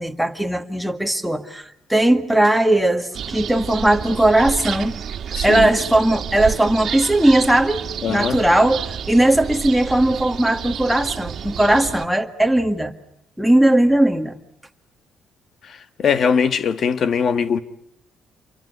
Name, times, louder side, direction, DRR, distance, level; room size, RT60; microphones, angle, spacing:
voice 1, 0.0-5.0 5.4-12.9 13.4-14.4, right 1 dB, ahead, 1.9 m, -18 dB
sound 1, 3.1-12.1, right 8 dB, 55° right, 1.9 m, -30 dB
voice 2, 5.3-5.7 8.0-8.4 15.6-17.6, left 6 dB, 50° left, 1.5 m, -21 dB
28.0 x 24.0 x 8.1 m
cardioid pair, 110°, 0 cm